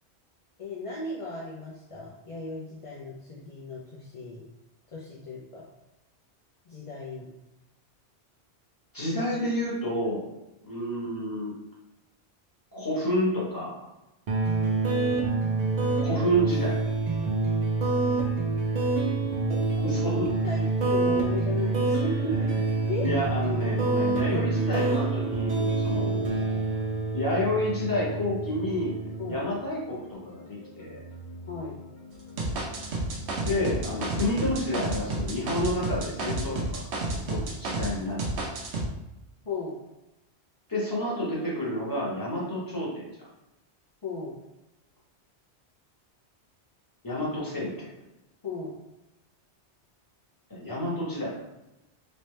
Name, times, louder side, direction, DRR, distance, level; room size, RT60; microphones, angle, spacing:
voice 1, 0.6-4.4 4.9-5.6 6.7-7.2 19.5-19.9 20.4-22.5 22.9-23.1 25.9-26.1 29.2-29.4 31.5-31.8 39.4-39.8 44.0-44.4 48.4-48.7, left 3 dB, 40° left, -6 dB, 0.6 m, -36 dB
voice 2, 8.9-10.3 10.6-11.5 12.7-13.8 16.0-16.8 19.8-20.3 22.5-22.6 23.0-26.6 27.1-28.9 29.3-31.0 33.4-36.9 37.3-38.2 40.7-43.1 47.0-47.9 50.5-51.3, equal, 20° left, -6 dB, 1.2 m, -29 dB
sound 1, 14.3-29.3, right 3 dB, 50° right, 0.6 m, -27 dB
sound 2, 21.8-34.3, left 1 dB, 80° left, 1.2 m, -46 dB
sound 3, 32.4-37.9 38.2-38.9, right 2 dB, 80° right, 1.0 m, -30 dB
3.2 x 2.9 x 3.2 m, 0.94 s
omnidirectional pair, 1.1 m